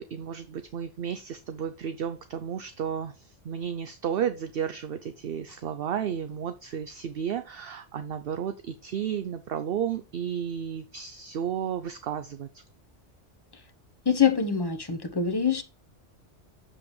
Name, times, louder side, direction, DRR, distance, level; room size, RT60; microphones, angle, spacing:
voice 1, 0.0-12.6, right 8 dB, 60° right, 0.7 m, -33 dB
voice 2, 14.0-15.6, left 7 dB, 20° left, 0.9 m, -24 dB
7.4 x 7.3 x 3.1 m
omnidirectional pair, 1.2 m